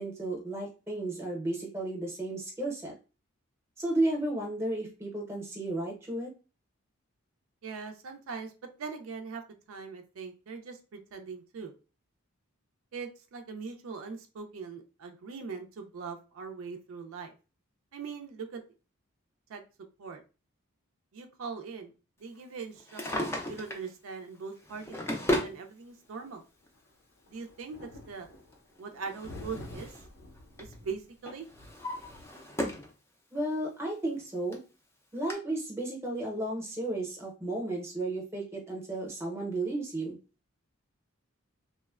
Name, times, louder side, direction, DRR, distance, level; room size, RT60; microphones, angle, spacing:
voice 1, 0.0-2.9 3.8-6.3 33.3-34.6 35.1-40.2, right 2 dB, 10° right, -1 dB, 0.7 m, -33 dB
voice 2, 7.6-8.5 8.8-9.4 9.7-11.7 12.9-17.3 17.9-18.6 19.5-20.2 21.1-21.9 22.2-25.0 25.4-26.4 27.3-28.3 28.8-29.9 30.6-31.5, right 5 dB, 80° right, 5 dB, 0.4 m, -41 dB
Drawer open or close, 22.8-23.9 24.6-25.6 26.7-26.8 28.5-30.1 30.4-30.7 31.3-32.9 33.4-33.5 34.2-34.3 34.5-34.6 35.3-35.4, left 1 dB, 10° left, 0.3 m, -34 dB
sound 1, 27.3-28.6 29.0-32.3, left 1 dB, 90° left, 0.7 m, -47 dB
3.0 x 2.1 x 2.3 m, 0.32 s
head